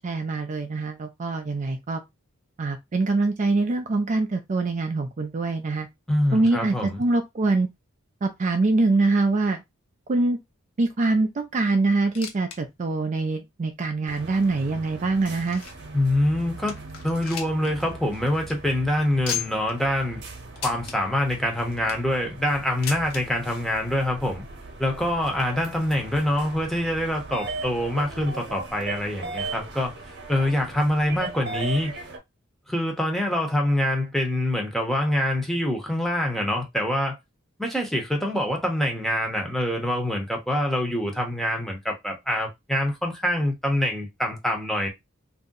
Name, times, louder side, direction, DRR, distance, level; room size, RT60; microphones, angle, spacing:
voice 1, 0.0-2.0 2.6-5.9 6.3-7.7 8.2-9.6 10.1-10.4 10.8-15.6, right 3 dB, 35° right, 0.4 m, -24 dB
voice 2, 6.1-7.0 15.9-16.7 17.0-20.2 20.6-24.4 24.8-29.9 30.3-32.0 32.7-37.2 37.6-44.9, left 1 dB, ahead, 0.7 m, -25 dB
sound 1, 12.0-12.6 12.9-13.0 13.6-13.7 14.5-15.9 16.4-16.5 16.7-17.7 18.0-18.1 18.4-18.5 19.2-19.7 20.6-21.0 21.6-22.1 22.8-23.2 24.2-24.3 24.5-24.6 25.4-25.5, left 8 dB, 85° left, 0.8 m, -35 dB
sound 2, 14.1-32.2, right 3 dB, 55° right, 0.8 m, -39 dB
2.6 x 2.1 x 3.7 m
head